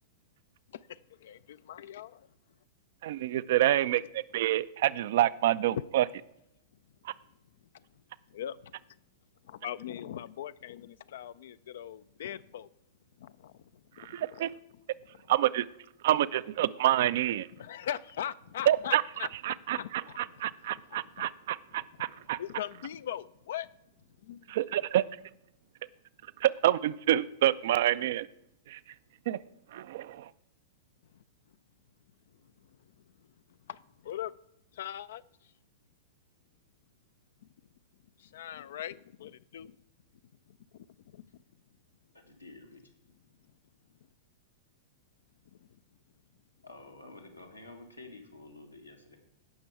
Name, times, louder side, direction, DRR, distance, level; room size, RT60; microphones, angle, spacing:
voice 1, 0.7-2.3 3.6-3.7 5.7-5.8 8.3-8.7 9.4-12.7 13.2-13.5 14.0-14.4 17.6-19.3 19.8-20.2 21.2-21.3 21.8-21.9 22.4-23.7 24.2-24.5 33.7-34.3 34.7-35.2 38.2-39.8 40.5-40.9 41.1-41.2, left 10 dB, 60° left, 0.3 m, -40 dB
voice 2, 3.0-6.0 7.0-7.1 14.0-14.5 15.3-15.6 16.0-17.5 18.7-19.0 19.4-22.4 24.5-25.0 26.4-28.3 28.7-28.8 29.3-29.4 29.7-30.3, right 13 dB, 55° right, 0.4 m, -27 dB
voice 3, 42.1-42.8 46.6-49.2, left 2 dB, 90° left, 1.6 m, -50 dB
16.5 x 6.0 x 4.7 m
figure-of-eight pair, 100°, 0 cm